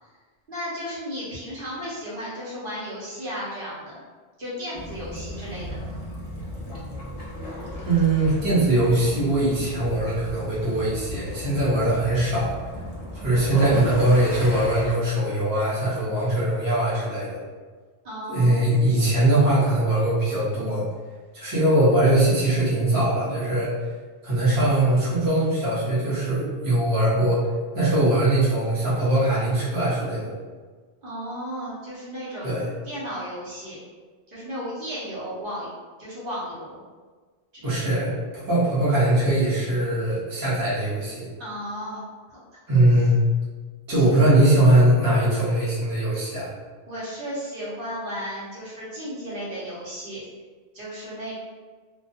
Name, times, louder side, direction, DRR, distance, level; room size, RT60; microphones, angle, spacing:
voice 1, 0.5-4.0 4.4-5.7 18.0-18.7 31.0-32.5 32.8-33.8 34.3-35.7 36.0-36.8 37.5-37.9 41.4-42.0 42.3-42.4 44.0-44.2 46.9-50.2 50.7-51.3, equal, 60° right, -9 dB, 0.9 m, -34 dB
Waves surf / Splash splatter / Trickle dribble, 4.7-14.9, equal, 40° left, 0.6 m, -35 dB
voice 2, 7.8-12.5 13.1-17.4 18.3-20.8 21.3-23.7 24.2-27.4 27.7-30.3 32.4-32.7 37.6-41.3 42.7-43.2 43.9-46.5, right 1 dB, 20° right, -9 dB, 0.8 m, -21 dB
2.2 x 2.2 x 2.7 m, 1.4 s
omnidirectional pair, 1.1 m